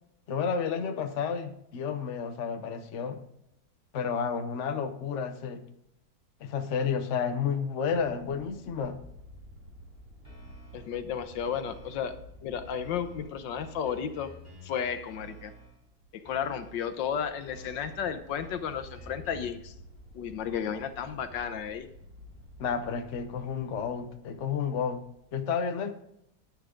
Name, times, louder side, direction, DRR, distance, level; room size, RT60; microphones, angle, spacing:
voice 1, 0.3-3.2 3.9-5.6 6.4-9.0 22.6-25.0 25.3-26.0, left 6 dB, 50° left, 7 dB, 1.0 m, -31 dB
sound 1, 7.9-25.3, left 1 dB, 40° right, 3.1 m, -52 dB
sound 2, 10.2-11.1 11.4-12.3 12.6-15.9 16.2-17.1 17.4-19.7, right 3 dB, 10° right, 3.7 m, -50 dB
voice 2, 10.7-12.1 12.4-14.3 14.6-15.5 16.1-19.7 20.1-21.9, left 8 dB, 70° left, 10 dB, 1.4 m, -33 dB
10.5 x 10.5 x 3.8 m, 0.78 s
omnidirectional pair, 2.1 m